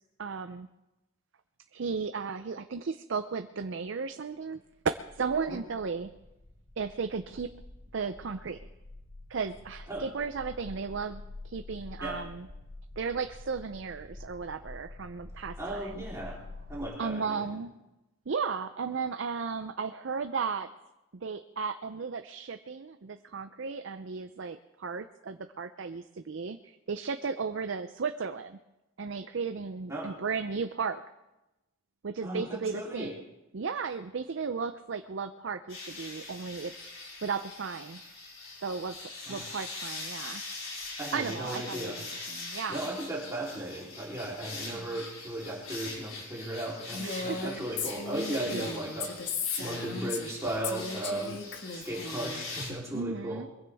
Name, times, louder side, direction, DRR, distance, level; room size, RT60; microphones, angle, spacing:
voice 1, 0.2-0.7 1.7-4.6 5.1-6.1 6.8-7.5 7.9-8.6 9.3-12.5 13.0-16.4 17.0-17.7 18.3-20.7 21.1-28.6 29.0-31.0 32.0-33.1 33.5-36.7 37.2-38.0 38.6-40.4 41.1-42.9 44.6-45.0 47.0-47.9 48.5-48.8 52.9-53.5, right 5 dB, 60° right, 9 dB, 0.5 m, -35 dB
sound 1, 5.1-16.8, left 2 dB, 30° left, 1.1 m, -48 dB
voice 2, 15.6-16.4 16.7-17.4 29.9-30.1 32.2-33.1 39.3-39.4 41.0-42.0 42.7-49.1 49.6-51.4 51.7-53.4, right 1 dB, 15° right, -5 dB, 3.3 m, -36 dB
sound 2, 35.7-52.7, left 3 dB, 75° left, 5.1 m, -42 dB
Female speech woman speaking, 46.9-50.3 50.6-52.4, left 4 dB, 55° left, 1.7 m, -36 dB
22.0 x 15.5 x 3.5 m, 0.99 s
head